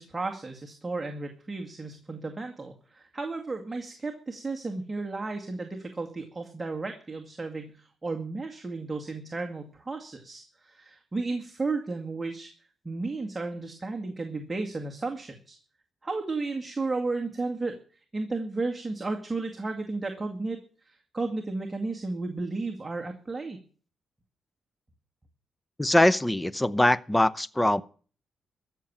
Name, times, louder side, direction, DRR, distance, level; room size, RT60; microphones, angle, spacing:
voice 1, 0.0-12.5 12.8-15.6 16.0-23.6, right 3 dB, 20° right, 2.1 m, -33 dB
voice 2, 25.8-27.8, left 1 dB, 10° left, 0.8 m, -22 dB
14.0 x 7.0 x 8.7 m
cardioid pair, 85°, 0 cm